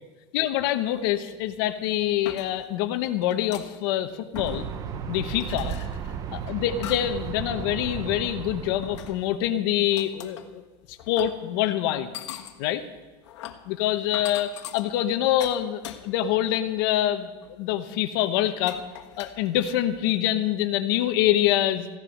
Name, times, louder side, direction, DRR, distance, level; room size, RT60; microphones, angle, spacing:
voice 1, 0.3-4.7 5.1-5.8 6.3-10.6 10.9-12.1 12.6-12.8 13.6-18.8 19.2-21.9, left 12 dB, 55° left, 10 dB, 1.1 m, -25 dB
sound 1, 1.2-1.3 1.9-2.8 3.2-4.0 4.4-5.0 5.4-7.3 7.7-8.0 8.8-9.5 9.9-10.5 11.0-11.4 11.9-16.4 16.8-17.0 17.4-17.5 18.3-18.4 18.7-20.0, left 11 dB, 85° left, 1.5 m, -42 dB
sound 2, 4.3-9.3, right 7 dB, 25° right, 0.7 m, -35 dB
15.5 x 11.0 x 6.5 m, 1.3 s
supercardioid pair, 170°, 14 cm